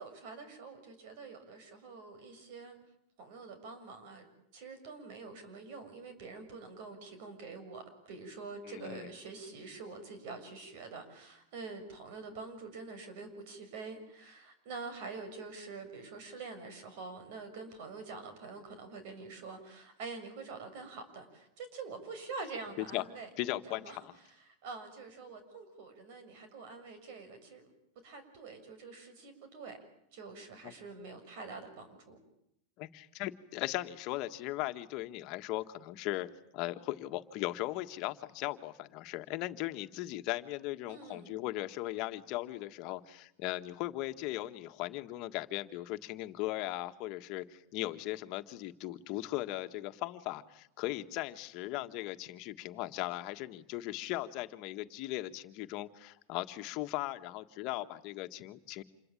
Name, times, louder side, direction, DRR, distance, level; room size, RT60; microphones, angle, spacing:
voice 1, 0.0-2.8 3.2-4.3 4.5-23.3 23.7-24.0 24.3-24.4 24.6-27.7 28.0-29.8 30.1-32.2 40.9-41.3, right 4 dB, 60° right, 9 dB, 6.8 m, -46 dB
voice 2, 8.6-9.1 22.8-23.0 23.4-24.1 30.6-30.7 32.8-58.8, left 17 dB, 50° left, 8 dB, 1.6 m, -38 dB
28.0 x 22.0 x 9.1 m, 0.76 s
supercardioid pair, 150°, 0 cm